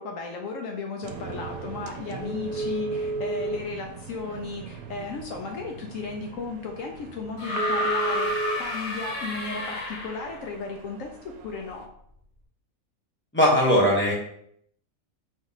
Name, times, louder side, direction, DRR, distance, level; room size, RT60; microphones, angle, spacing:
voice 1, 0.0-8.3 8.6-11.1 11.4-11.9, left 4 dB, 70° left, 2 dB, 1.0 m, -35 dB
sound 1, 1.0-11.9, right 3 dB, 85° right, 1.0 m, -36 dB
sound 2, 7.4-10.4 11.7-11.8, left 1 dB, 50° left, 1.2 m, -30 dB
voice 2, 13.3-14.1, equal, 10° left, -4 dB, 1.0 m, -19 dB
4.0 x 3.0 x 4.0 m, 0.69 s
omnidirectional pair, 1.5 m